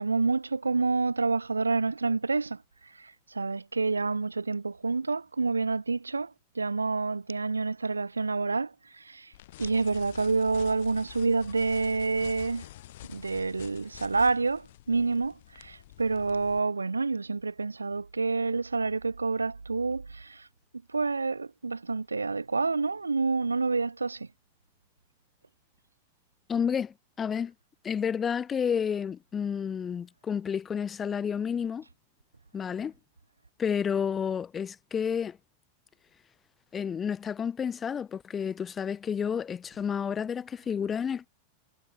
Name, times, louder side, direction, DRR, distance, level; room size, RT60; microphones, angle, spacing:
voice 1, 0.0-2.6 3.0-9.3 9.6-12.7 13.1-20.5 20.9-24.3, right 4 dB, 80° right, 1.1 m, -28 dB
sound 1, 9.3-16.6, left 15 dB, 55° left, 5.6 m, -48 dB
voice 2, 26.5-27.5 27.8-31.8 32.5-32.9 33.6-35.4 36.7-41.3, left 7 dB, 20° left, 3.8 m, -30 dB
figure-of-eight pair, 90°, 0 cm